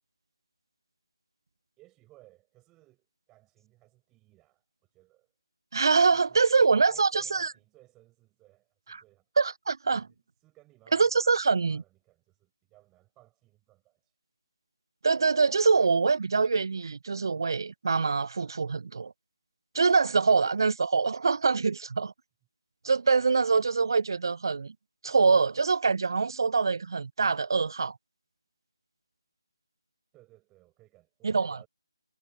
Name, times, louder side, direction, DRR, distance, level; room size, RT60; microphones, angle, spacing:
voice 1, 1.8-5.3 6.1-9.2 9.9-14.1 19.9-20.4 30.1-31.7, right 18 dB, 10° right, 7.6 m, -61 dB
voice 2, 5.7-7.5 9.4-10.1 10.9-11.8 15.0-19.1 19.7-22.1 22.8-24.7 25.0-27.9 31.2-31.6, right 4 dB, 55° right, 0.5 m, -24 dB
figure-of-eight pair, 155°, 3 cm